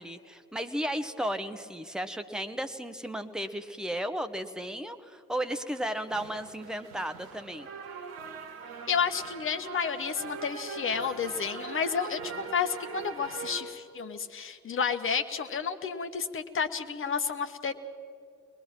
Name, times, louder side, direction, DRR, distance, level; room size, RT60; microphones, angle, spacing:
voice 1, 0.0-7.7, equal, ahead, 8 dB, 1.0 m, -34 dB
sound 1, 5.7-13.6, right 5 dB, 65° right, 1.7 m, -42 dB
voice 2, 8.9-17.7, left 6 dB, 30° left, 8 dB, 1.3 m, -31 dB
23.5 x 20.5 x 6.0 m, 2.5 s
figure-of-eight pair, 55°, 43 cm